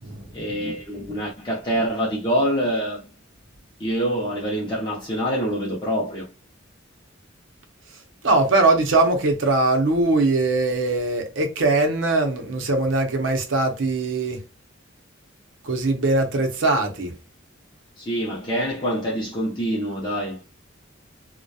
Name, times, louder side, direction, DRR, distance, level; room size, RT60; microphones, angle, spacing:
voice 1, 0.3-3.1 3.8-6.3 18.0-20.4, equal, 25° left, 0.5 m, -25 dB
voice 2, 8.2-14.4 15.6-17.1, right 2 dB, 70° right, 0.6 m, -21 dB
2.7 x 2.1 x 2.2 m
head